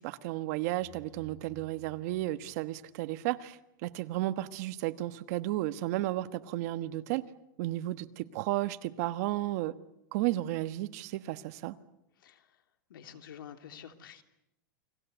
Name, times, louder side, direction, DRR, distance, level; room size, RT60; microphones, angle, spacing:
voice 1, 0.0-7.2 7.6-9.7 10.1-11.7, right 16 dB, 50° right, 12 dB, 1.3 m, -33 dB
sound 1, 0.6-3.5, right 8 dB, 15° left, 5.5 m, -57 dB
voice 2, 12.2-12.6 12.9-14.2, left 9 dB, 90° left, 7 dB, 3.0 m, -49 dB
29.5 x 22.5 x 8.1 m, 0.81 s
supercardioid pair, 160°, 11 cm